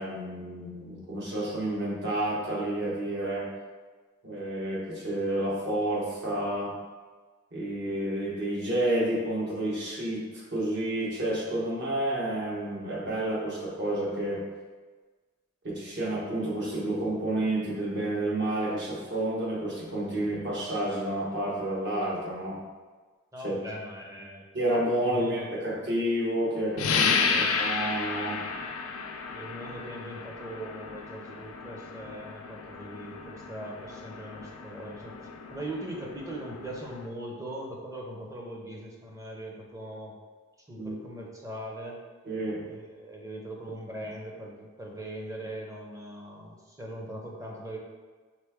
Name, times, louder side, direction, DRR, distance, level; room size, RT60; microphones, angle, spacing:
voice 1, 0.0-3.5 4.2-6.7 7.5-14.4 15.6-22.6 23.4-23.6 24.5-27.1 27.4-28.4 40.8-41.0 42.2-42.6, right 1 dB, 55° right, -5 dB, 1.3 m, -30 dB
voice 2, 23.3-24.4 25.0-25.5 26.9-27.5 29.3-35.2 35.5-40.1 40.7-42.0 42.6-47.8, right 1 dB, 15° right, -1 dB, 0.6 m, -40 dB
sound 1, 26.8-37.1, left 5 dB, 70° left, 0.4 m, -32 dB
4.3 x 3.3 x 3.5 m, 1.4 s
head